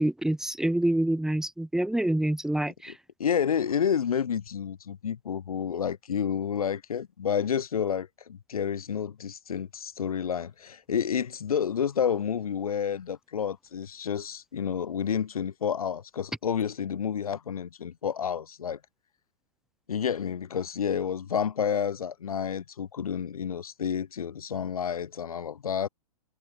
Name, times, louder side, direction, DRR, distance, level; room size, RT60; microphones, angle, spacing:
voice 1, 0.0-2.9, right 1 dB, ahead, 2.3 m, -26 dB
voice 2, 2.9-18.8 19.9-25.9, left 7 dB, 65° left, 6.1 m, -30 dB
figure-of-eight pair, 115°, 20 cm